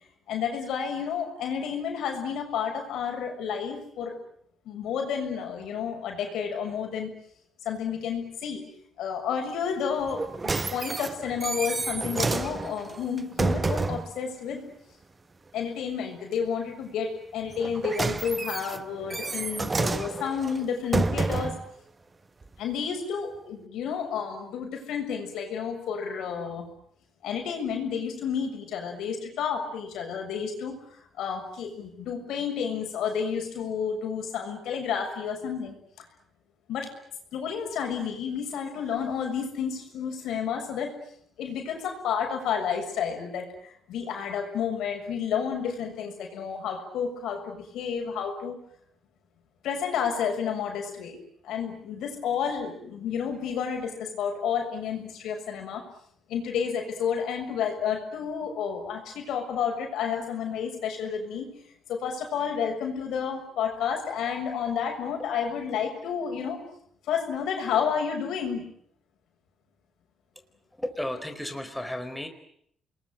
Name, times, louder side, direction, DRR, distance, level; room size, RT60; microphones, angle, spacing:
voice 1, 0.3-4.2 4.6-7.1 7.6-8.6 9.0-10.2 10.7-14.7 15.5-21.6 22.6-26.7 27.2-30.8 31.2-35.8 36.7-36.9 37.3-40.9 41.4-48.6 49.6-51.2 51.4-55.8 56.3-61.5 61.9-66.6 67.1-68.6, left 7 dB, 80° left, 4 dB, 6.8 m, -31 dB
sound 1, 10.1-14.1 17.5-21.7 22.4-22.5, right 3 dB, 25° right, 1.2 m, -29 dB
voice 2, 70.8-72.3, left 1 dB, 5° left, 6 dB, 4.3 m, -33 dB
28.0 x 21.5 x 9.3 m, 0.69 s
cardioid pair, 90°, 0 cm